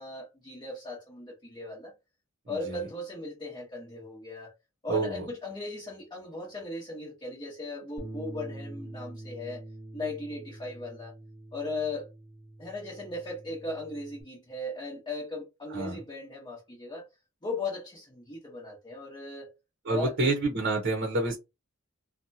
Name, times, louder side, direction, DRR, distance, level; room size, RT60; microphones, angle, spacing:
voice 1, 0.0-1.9 2.5-4.5 4.8-9.6 9.9-11.1 11.5-12.1 12.6-17.1 17.4-19.5 19.9-20.4, left 2 dB, 20° left, 0.8 m, -37 dB
voice 2, 2.5-2.8 4.9-5.3 15.7-16.0 19.8-21.4, right 2 dB, 50° right, 0.8 m, -28 dB
Bass guitar, 8.0-14.2, right 1 dB, 65° left, 1.0 m, -45 dB
2.8 x 2.2 x 2.6 m
head